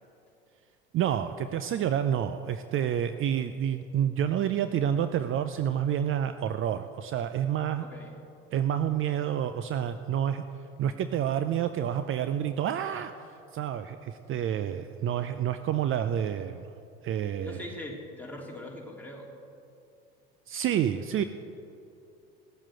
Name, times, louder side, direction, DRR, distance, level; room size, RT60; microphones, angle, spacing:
voice 1, 0.9-7.9 8.5-10.4 10.8-16.7 17.0-17.6 20.5-21.2, right 9 dB, 45° right, 10 dB, 0.6 m, -29 dB
voice 2, 7.8-8.1 17.4-19.3, left 1 dB, 5° left, -2 dB, 3.1 m, -41 dB
17.0 x 7.4 x 7.7 m, 2.6 s
hypercardioid pair, 70°, 30 cm